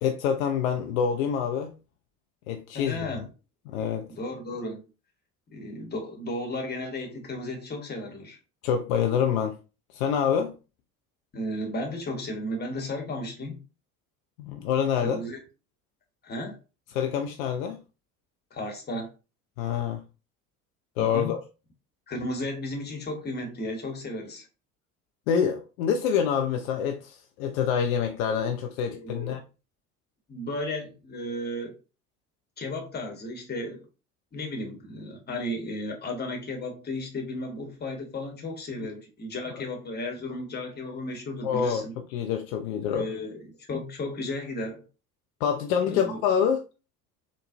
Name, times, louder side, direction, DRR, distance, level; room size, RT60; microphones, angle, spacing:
voice 1, 0.0-1.7 2.5-3.2 3.7-4.1 8.6-9.6 9.9-10.5 14.4-15.2 16.9-17.8 19.6-20.0 21.0-21.4 25.3-29.4 41.4-41.8 42.1-43.0 45.4-46.6, left 7 dB, 65° left, 0.5 m, -26 dB
voice 2, 2.7-3.2 4.1-4.8 5.5-8.4 11.3-13.6 15.0-15.4 16.2-16.6 18.5-19.1 21.0-21.4 22.1-24.5 28.9-29.3 30.3-31.7 32.6-33.9 34.3-41.9 42.8-44.9 45.8-46.2, left 1 dB, 20° left, 1.1 m, -34 dB
3.9 x 2.3 x 2.6 m
figure-of-eight pair, 60°, 45 cm